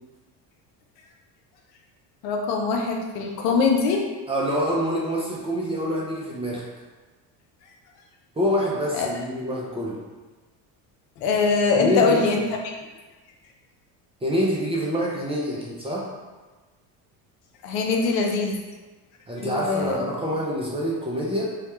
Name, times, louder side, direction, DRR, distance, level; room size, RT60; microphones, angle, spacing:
voice 1, 2.2-4.1 8.9-9.1 11.2-12.8 17.6-18.6 19.4-20.0, left 4 dB, 85° left, 1 dB, 0.6 m, -23 dB
voice 2, 4.3-6.7 8.4-10.0 11.7-12.3 14.2-16.1 19.3-21.6, equal, 15° right, -4 dB, 0.3 m, -26 dB
2.3 x 2.1 x 2.9 m, 1.2 s
hypercardioid pair, 75°, 48 cm